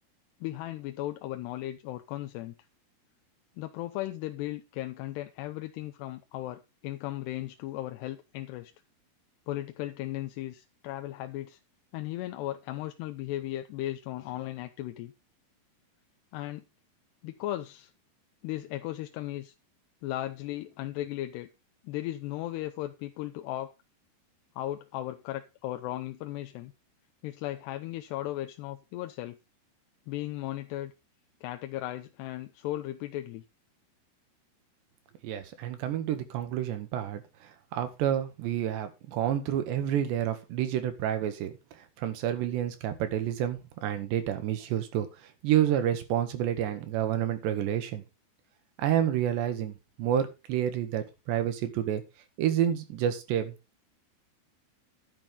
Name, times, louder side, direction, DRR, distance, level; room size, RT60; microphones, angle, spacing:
voice 1, 0.4-2.5 3.6-8.7 9.5-11.6 11.9-15.1 16.3-16.6 17.2-17.9 18.4-19.5 20.0-21.5 21.8-23.7 24.6-26.7 27.2-29.4 30.1-30.9 31.4-33.4, left 15 dB, 80° left, 2.9 m, -36 dB
voice 2, 35.2-37.2 37.7-41.5 42.0-45.1 45.4-48.0 48.8-49.7 50.0-52.0 52.4-53.5, right 10 dB, 90° right, 4.0 m, -29 dB
11.0 x 10.5 x 3.8 m
omnidirectional pair, 4.8 m